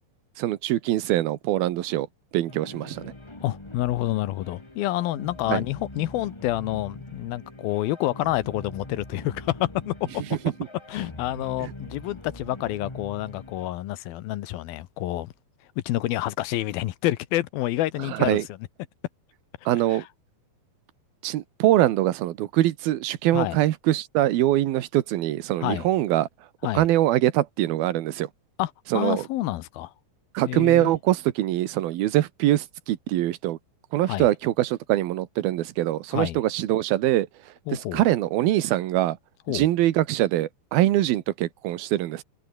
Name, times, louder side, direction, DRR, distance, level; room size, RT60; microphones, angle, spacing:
voice 1, 0.4-2.1 2.3-3.1 5.5-5.6 11.6-11.7 18.2-18.4 19.7-20.0 21.2-26.3 26.7-28.3 28.9-29.2 30.3-33.6 33.9-37.3 37.7-39.2 39.5-42.2, right 14 dB, 90° right, 3.1 m, -23 dB
sound 1, 2.5-13.7, left 2 dB, 10° left, 1.3 m, -43 dB
voice 2, 3.4-10.2 10.9-15.3 15.8-18.4 19.9-20.1 23.3-23.6 25.6-25.9 26.6-26.9 28.6-29.9 30.5-30.9 34.0-34.3 36.1-36.4 37.7-38.0 39.5-39.7, left 15 dB, 85° left, 2.9 m, -28 dB
omnidirectional pair, 4.2 m